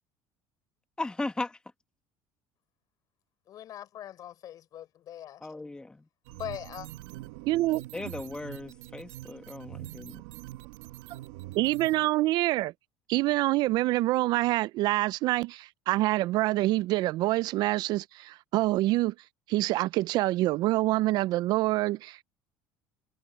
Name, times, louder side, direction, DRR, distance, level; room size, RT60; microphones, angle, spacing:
voice 1, 1.0-1.6 5.4-6.0 7.9-10.2, left 2 dB, 10° left, 1.4 m, -37 dB
voice 2, 3.5-5.5 6.3-6.9, left 11 dB, 50° left, 4.5 m, -41 dB
sound 1, 6.2-12.1, right 17 dB, 90° right, 1.1 m, -44 dB
voice 3, 7.5-8.1 11.6-12.7 13.1-19.1 19.5-22.2, right 18 dB, 60° right, 0.4 m, -26 dB
supercardioid pair, 115°, 8 cm